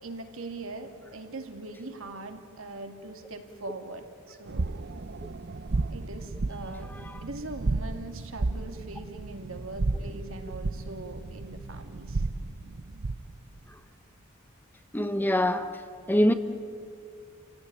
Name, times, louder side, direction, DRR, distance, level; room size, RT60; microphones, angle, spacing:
voice 1, 0.0-4.7 5.9-6.9 7.2-12.3, right 2 dB, 70° right, 2.5 m, -41 dB
sound 1, 4.5-13.4, right 3 dB, 50° right, 0.6 m, -33 dB
voice 2, 14.9-15.7 16.1-16.3, left 1 dB, 10° left, 0.9 m, -24 dB
28.5 x 17.5 x 9.9 m
head